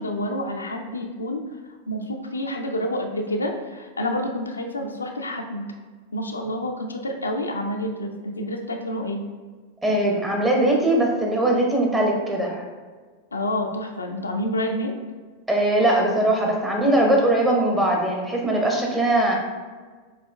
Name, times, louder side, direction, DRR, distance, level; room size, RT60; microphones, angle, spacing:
voice 1, 0.0-1.5 1.9-5.7 6.1-9.2 13.3-14.9, left 1 dB, 75° left, 3 dB, 0.4 m, -28 dB
voice 2, 9.8-12.6 15.5-19.4, right 1 dB, 10° right, -1 dB, 0.9 m, -21 dB
6.9 x 2.7 x 2.2 m, 1.5 s
figure-of-eight pair, 90°, 0 cm